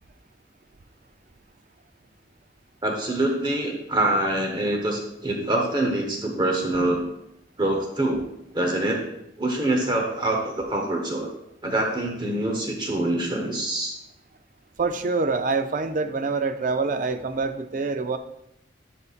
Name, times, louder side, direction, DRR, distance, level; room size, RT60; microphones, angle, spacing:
voice 1, 2.8-7.0 7.6-8.3 8.5-9.1 9.4-11.3 11.6-13.9, right 1 dB, 25° right, 1 dB, 0.9 m, -25 dB
voice 2, 14.8-18.2, right 4 dB, 45° right, 10 dB, 0.5 m, -25 dB
11.0 x 5.5 x 2.4 m, 0.81 s
head